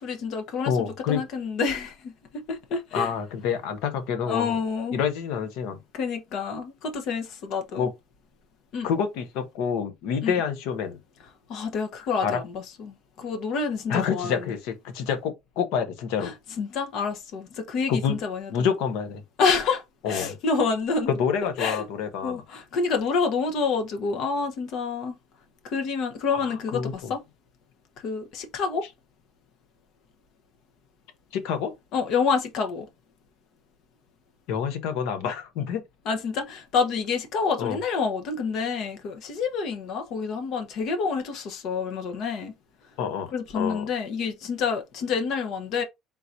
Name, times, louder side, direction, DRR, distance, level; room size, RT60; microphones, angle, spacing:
voice 1, 0.0-3.1 4.2-5.0 5.9-7.9 8.7-8.9 10.2-10.3 11.5-14.4 16.2-18.7 19.4-21.1 21.6-21.9 22.2-25.2 25.6-27.2 28.0-28.8 31.9-32.9 36.0-42.5 43.3-45.8, left 5 dB, 60° left, 0.9 m, -28 dB
voice 2, 0.7-1.2 2.9-4.6 4.9-5.8 7.8-7.9 8.8-11.0 12.2-12.4 13.9-16.3 17.9-18.2 18.5-19.2 20.0-20.4 21.1-22.4 26.3-27.1 31.3-31.7 34.5-35.8 37.6-37.8 43.0-43.3 43.5-43.9, left 7 dB, 80° left, 1.1 m, -27 dB
3.8 x 2.7 x 4.4 m
cardioid pair, 130°, 0 cm